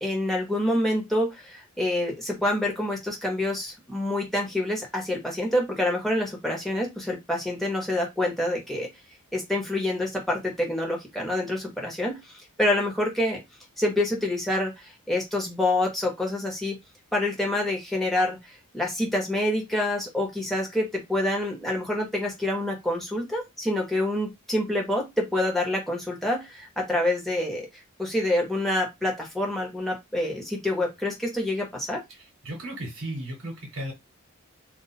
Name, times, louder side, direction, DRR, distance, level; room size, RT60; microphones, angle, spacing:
voice 1, 0.0-8.9 9.3-13.4 13.8-16.7 17.1-27.7 28.0-32.0, left 1 dB, ahead, -1 dB, 1.1 m, -27 dB
voice 2, 32.1-33.9, right 1 dB, 60° right, 1 dB, 1.1 m, -35 dB
2.5 x 2.4 x 4.1 m, 0.19 s
head